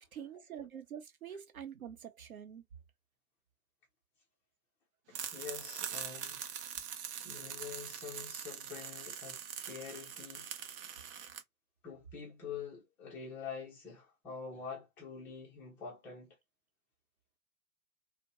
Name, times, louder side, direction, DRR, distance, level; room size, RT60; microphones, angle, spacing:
voice 1, 0.1-2.6, right 8 dB, 75° right, 1.0 m, -46 dB
voice 2, 5.1-6.4 7.0-10.5 11.8-16.4, left 6 dB, 5° left, 0.3 m, -46 dB
sound 1, 5.1-11.4, right 8 dB, 40° right, 0.7 m, -43 dB
2.5 x 2.2 x 2.8 m
figure-of-eight pair, 115°, 43 cm